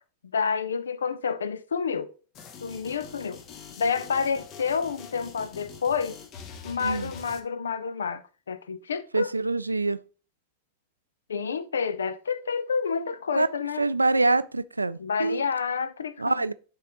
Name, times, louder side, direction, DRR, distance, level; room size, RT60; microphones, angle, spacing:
voice 1, 0.3-2.1 2.6-3.4 3.8-6.2 6.6-9.3 11.3-13.8 15.0-16.4, left 6 dB, 70° left, 0.5 m, -29 dB
sound 1, 2.3-7.4, left 6 dB, 35° left, 1.0 m, -44 dB
voice 2, 9.1-10.0 13.4-13.5 13.8-15.4 16.2-16.5, right 3 dB, 80° right, 0.3 m, -25 dB
11.0 x 3.8 x 3.0 m
figure-of-eight pair, 90°, 0 cm